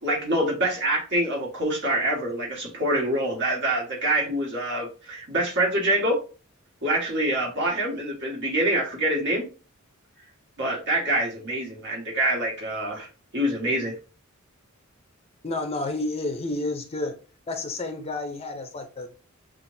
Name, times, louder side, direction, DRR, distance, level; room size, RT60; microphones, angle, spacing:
voice 1, 0.0-6.2 6.8-9.5 10.6-13.1 13.3-13.9, right 1 dB, 55° right, 1.8 m, -25 dB
voice 2, 15.4-17.2 17.5-19.2, left 2 dB, 30° left, 0.6 m, -30 dB
7.3 x 2.5 x 2.6 m
head